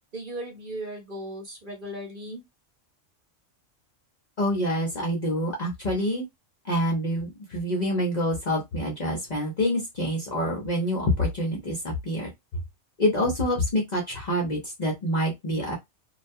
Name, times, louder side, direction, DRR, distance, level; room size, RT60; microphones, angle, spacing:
voice 1, 0.1-2.4, right 1 dB, 45° right, 0.8 m, -37 dB
voice 2, 4.4-6.2 6.7-12.6 13.0-15.7, equal, 45° left, 0.6 m, -27 dB
2.3 x 2.2 x 2.6 m
omnidirectional pair, 1.3 m